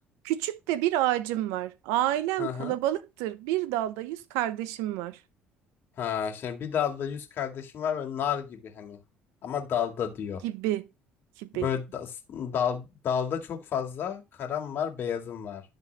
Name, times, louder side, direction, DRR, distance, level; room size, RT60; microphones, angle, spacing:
voice 1, 0.2-5.2 10.4-10.9 11.4-11.7, right 14 dB, 85° right, 0.6 m, -29 dB
voice 2, 2.4-2.8 6.0-9.0 9.4-10.4 11.5-15.6, left 8 dB, 55° left, 1.9 m, -31 dB
11.5 x 3.9 x 3.3 m
supercardioid pair, 80°, 4 cm